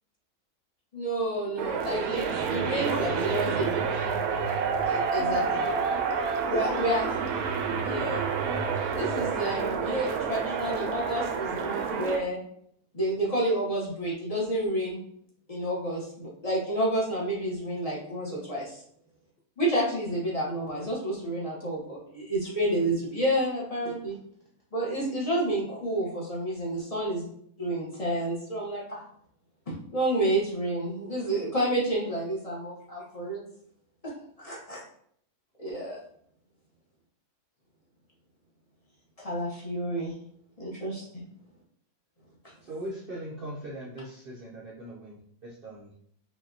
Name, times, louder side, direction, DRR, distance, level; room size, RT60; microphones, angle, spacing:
voice 1, 0.9-3.8 4.9-5.4 6.4-7.1 7.8-8.2 8.9-12.4 12.9-15.0 15.5-18.8 19.6-24.2 24.7-27.3 27.6-29.0 29.7-33.4 34.0-34.8 35.6-36.0 39.2-40.1 40.6-41.2, right 1 dB, 25° left, -4 dB, 1.1 m, -30 dB
sound 1, 1.6-12.2, right 6 dB, 80° right, 1.1 m, -29 dB
voice 2, 1.7-2.1 2.7-4.3 5.1-5.9 6.5-7.3 8.7-8.9, left 1 dB, 60° left, -2 dB, 0.6 m, -41 dB
voice 3, 42.6-45.9, right 1 dB, 50° right, -4 dB, 0.7 m, -40 dB
5.0 x 2.8 x 2.7 m, 0.64 s
omnidirectional pair, 1.6 m